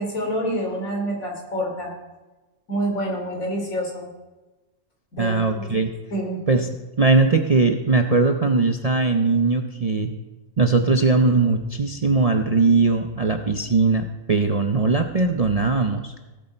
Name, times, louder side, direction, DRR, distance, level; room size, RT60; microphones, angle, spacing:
voice 1, 0.0-1.9 2.7-4.1 5.1-5.6 6.1-6.4, equal, 75° left, -1 dB, 3.5 m, -27 dB
voice 2, 5.2-5.9 6.5-10.1 10.6-16.3, right 3 dB, 45° right, 5 dB, 0.5 m, -20 dB
17.5 x 8.3 x 4.5 m, 1.2 s
omnidirectional pair, 1.4 m